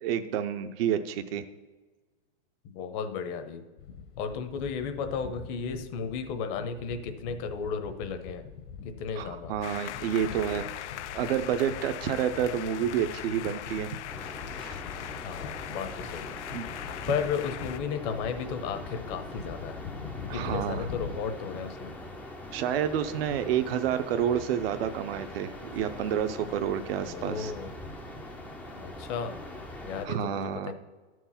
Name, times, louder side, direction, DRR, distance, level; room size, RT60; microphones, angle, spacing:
voice 1, 0.0-1.4 9.2-10.7 11.1-13.9 14.6-14.8 16.5-16.7 20.3-20.9 22.5-27.5 30.0-30.7, right 9 dB, 60° right, 9 dB, 0.7 m, -29 dB
voice 2, 2.6-3.6 4.2-8.4 8.8-9.5 15.2-16.3 17.1-19.8 20.3-21.9 27.1-27.7 28.8-29.4 29.9-30.7, left 6 dB, 35° left, 8 dB, 0.8 m, -34 dB
sound 1, 3.8-21.2, left 6 dB, 55° left, 1.2 m, -44 dB
sound 2, 9.6-17.8, left 12 dB, 90° left, 0.5 m, -40 dB
sound 3, 14.1-30.1, left 1 dB, 5° left, 0.4 m, -43 dB
12.5 x 4.7 x 5.7 m, 1.3 s
supercardioid pair, 150°, 34 cm